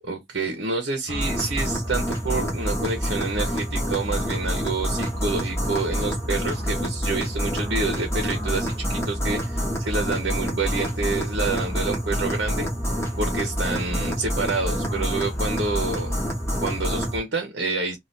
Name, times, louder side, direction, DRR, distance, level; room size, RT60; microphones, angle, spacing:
voice 1, 0.1-12.7 13.2-16.2 16.6-18.0, right 3 dB, 80° right, 0.8 m, -28 dB
sound 1, 1.1-17.2, equal, 15° left, 0.9 m, -27 dB
2.7 x 2.4 x 3.2 m
head